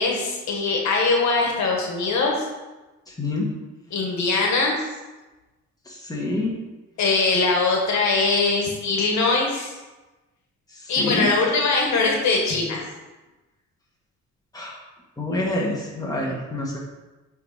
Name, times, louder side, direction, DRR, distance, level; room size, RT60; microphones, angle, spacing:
voice 1, 0.0-2.3 3.9-4.8 7.0-9.7 10.9-12.8, left 3 dB, 65° left, 0 dB, 1.6 m, -21 dB
voice 2, 3.2-3.5 5.9-6.5 11.0-11.3 14.5-14.8 15.2-16.8, left 2 dB, 10° left, -3 dB, 1.8 m, -26 dB
8.2 x 3.8 x 4.2 m, 1.1 s
cardioid pair, 90°, 30 cm